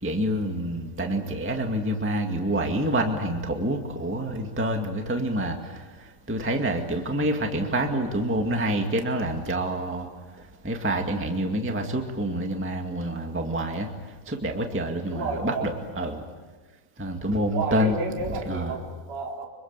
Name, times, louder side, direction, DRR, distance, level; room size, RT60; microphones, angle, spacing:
voice 1, 0.0-10.1 10.4-13.9 14.2-16.2 17.0-18.0 18.3-18.8, right 1 dB, 10° right, 3 dB, 0.6 m, -27 dB
voice 2, 15.1-15.7 17.5-19.5, right 4 dB, 45° right, -1 dB, 4.7 m, -32 dB
25.5 x 25.0 x 8.9 m, 1.4 s
omnidirectional pair, 4.4 m